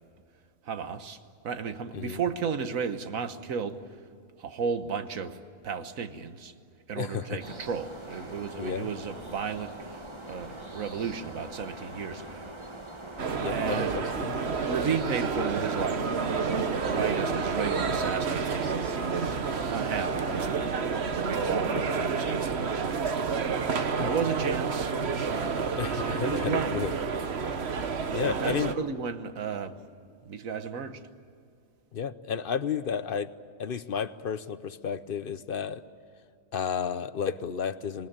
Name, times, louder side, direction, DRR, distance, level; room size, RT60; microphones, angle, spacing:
voice 1, 0.6-1.2 1.4-3.8 4.4-6.5 6.9-12.5 13.5-14.0 14.7-19.4 19.7-20.6 21.2-22.9 23.3-23.6 24.0-24.9 25.9-26.8 28.2-29.8 30.2-31.0, right 6 dB, 75° right, 9 dB, 1.6 m, -34 dB
voice 2, 6.9-7.4 8.6-8.9 13.4-14.4 24.0-24.1 25.8-26.9 28.1-28.7 31.9-33.3 33.6-35.8 36.5-38.1, left 7 dB, 50° left, 13 dB, 0.8 m, -32 dB
sound 1, 7.4-20.6, right 1 dB, 20° right, 1.4 m, -43 dB
sound 2, 13.2-28.7, right 5 dB, 50° right, 1.3 m, -29 dB
26.5 x 20.0 x 8.8 m, 2.5 s
omnidirectional pair, 1.4 m